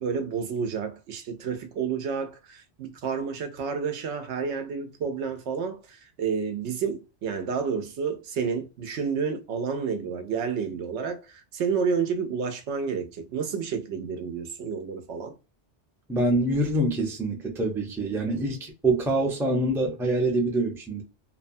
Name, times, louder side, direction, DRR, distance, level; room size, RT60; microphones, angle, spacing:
voice 1, 0.0-15.4, right 6 dB, 75° right, 0.9 m, -30 dB
voice 2, 16.1-21.0, right 2 dB, 5° right, 0.4 m, -25 dB
2.8 x 2.1 x 2.6 m
omnidirectional pair, 1.2 m